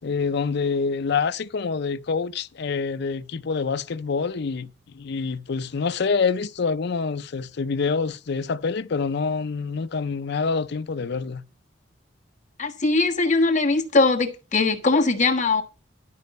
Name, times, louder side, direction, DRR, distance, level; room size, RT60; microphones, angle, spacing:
voice 1, 0.0-11.4, left 5 dB, 60° left, 0.5 m, -26 dB
voice 2, 12.6-15.6, left 3 dB, 40° left, 1.4 m, -21 dB
11.0 x 5.3 x 5.3 m
head